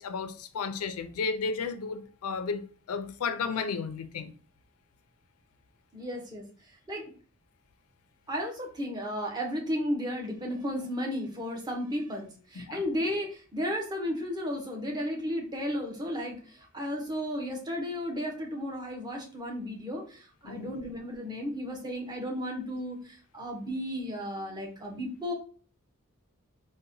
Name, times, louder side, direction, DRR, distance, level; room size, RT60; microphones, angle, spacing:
voice 1, 0.0-4.3 12.5-12.8 20.4-20.8, left 5 dB, 85° left, 0.4 m, -33 dB
voice 2, 5.9-6.4 6.9-7.1 8.3-16.4 16.7-23.0 23.3-25.3, equal, 20° right, 0.6 m, -34 dB
3.9 x 2.1 x 2.6 m
head